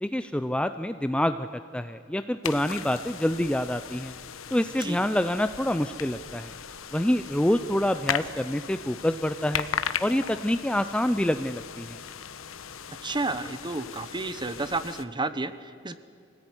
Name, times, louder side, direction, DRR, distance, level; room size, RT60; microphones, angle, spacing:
voice 1, 0.0-1.5 1.7-4.1 4.5-6.5 6.9-9.7 10.0-12.0, left 1 dB, 5° left, 10 dB, 0.5 m, -26 dB
sound 1, 2.4-15.0, left 7 dB, 90° left, 1.1 m, -37 dB
voice 2, 12.9-16.0, right 3 dB, 25° right, 12 dB, 1.1 m, -31 dB
25.0 x 17.5 x 9.9 m, 2.3 s
head